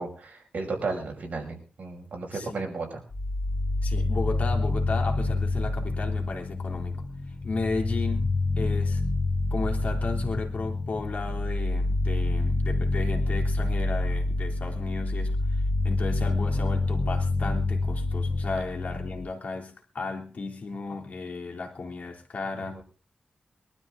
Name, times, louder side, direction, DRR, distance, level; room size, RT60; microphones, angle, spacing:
voice 1, 0.0-3.0 22.8-22.9, right 3 dB, 60° right, 1 dB, 5.6 m, -34 dB
voice 2, 2.3-2.6 3.8-7.0 7.4-9.0 9.5-15.4 15.8-22.8, left 3 dB, 60° left, 2 dB, 3.4 m, -34 dB
sound 1, 3.1-19.3, left 2 dB, 35° left, 7.2 m, -27 dB
23.0 x 12.5 x 3.7 m, 0.35 s
wide cardioid pair, 105°, 3 cm